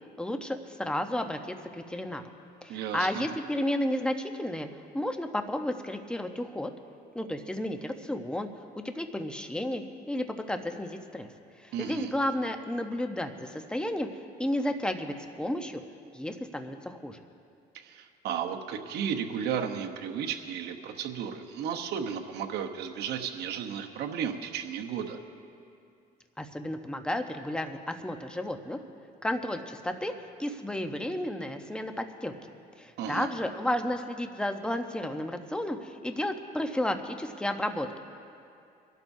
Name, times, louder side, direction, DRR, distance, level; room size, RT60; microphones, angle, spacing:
voice 1, 0.2-2.2 2.6-4.7 4.9-6.7 7.1-8.5 8.8-11.3 11.6-14.1 14.4-15.8 16.1-17.2 26.4-28.8 29.2-30.1 30.4-32.5 32.8-38.0, left 1 dB, 5° left, 6 dB, 0.9 m, -32 dB
voice 2, 2.7-3.3 11.7-12.1 17.7-25.2 33.0-33.3, right 8 dB, 75° right, 4 dB, 1.0 m, -34 dB
26.5 x 12.0 x 2.7 m, 2.5 s
cardioid pair, 110°, 17 cm